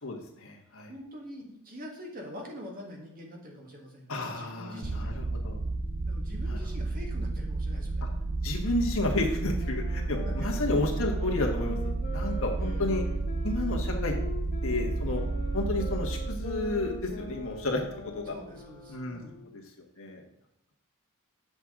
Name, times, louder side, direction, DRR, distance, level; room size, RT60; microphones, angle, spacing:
voice 1, 0.0-0.9 4.1-5.6 6.5-6.6 8.4-11.8 12.1-13.0 13.4-14.2 14.6-15.2 15.5-17.8 18.1-18.3 18.9-19.2 19.5-19.6 20.0-20.2, left 2 dB, 65° left, 1 dB, 1.5 m, -31 dB
voice 2, 0.9-5.1 6.1-8.0 10.2-11.0 12.5-12.9 18.2-19.5, equal, 40° right, 0 dB, 1.7 m, -45 dB
sound 1, 4.8-18.1, right 2 dB, 70° right, 1.1 m, -32 dB
sound 2, 9.5-19.6, left 1 dB, 35° left, 0.8 m, -43 dB
7.9 x 6.1 x 3.8 m, 0.86 s
head